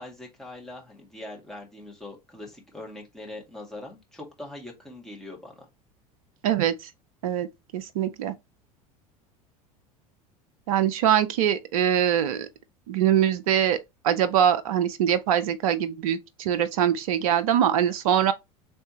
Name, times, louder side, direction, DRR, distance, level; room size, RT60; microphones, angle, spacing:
voice 1, 0.0-5.7, left 2 dB, ahead, 1.8 m, -42 dB
voice 2, 6.4-6.9 7.2-7.5 7.7-8.3 10.7-12.5 12.9-13.8 14.0-18.3, right 10 dB, 70° right, 0.5 m, -23 dB
4.4 x 3.3 x 2.9 m
hypercardioid pair, 80°, 19 cm